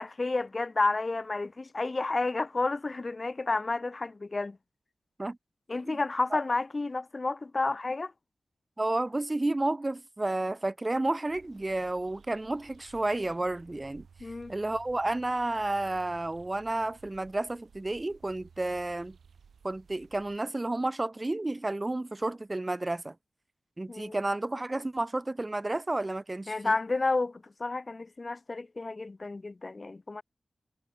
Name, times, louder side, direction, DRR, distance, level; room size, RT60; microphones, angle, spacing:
voice 1, 0.0-4.6 5.7-8.1 14.2-14.5 23.9-24.2 26.5-30.2, left 3 dB, 40° left, 1.5 m, -31 dB
voice 2, 8.8-14.1 14.5-19.2 19.6-23.1 23.8-26.7, right 2 dB, 25° right, 0.8 m, -31 dB
sound 1, 11.3-20.4, right 6 dB, 85° right, 4.6 m, -56 dB
cardioid pair, 70°, 0 cm